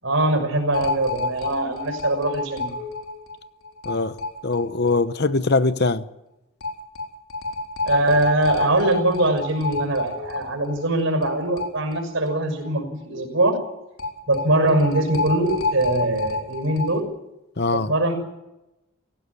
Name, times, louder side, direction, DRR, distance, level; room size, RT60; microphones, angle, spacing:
voice 1, 0.0-2.7 7.8-13.6 14.3-17.0 17.7-18.1, right 1 dB, 60° right, 6.2 m, -22 dB
sound 1, 0.7-5.0 5.3-5.4 5.6-5.7 6.6-12.4 12.6-12.7 14.0-17.0, left 3 dB, 85° left, 4.0 m, -29 dB
voice 2, 4.4-6.0 17.6-17.9, left 3 dB, 50° left, 0.9 m, -22 dB
18.0 x 16.0 x 9.8 m
head